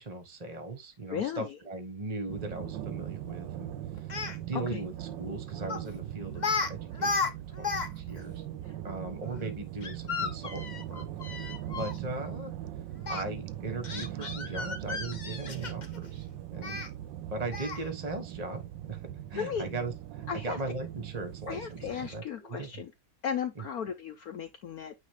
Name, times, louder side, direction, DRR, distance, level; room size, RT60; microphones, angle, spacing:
voice 1, 0.0-3.7 4.0-4.1 4.5-6.4 6.7-7.2 7.6-8.4 8.8-11.1 11.6-12.5 13.1-16.8 17.3-19.0 19.3-22.8 23.6-23.7, right 3 dB, 25° right, 1.0 m, -38 dB
voice 2, 1.1-1.6 4.5-4.8 8.6-8.8 19.4-19.7 20.3-20.6 21.5-22.9 23.2-24.9, left 8 dB, 80° left, 0.8 m, -35 dB
sound 1, 2.3-22.2, right 12 dB, 70° right, 1.1 m, -40 dB
Speech, 4.0-4.4 5.7-5.9 6.4-6.7 6.9-7.9 8.2-8.3 9.8-12.0 13.0-13.2 13.8-16.0 16.6-16.9 17.5-17.9, left 4 dB, 50° left, 0.5 m, -33 dB
9.1 x 3.0 x 3.5 m
omnidirectional pair, 2.3 m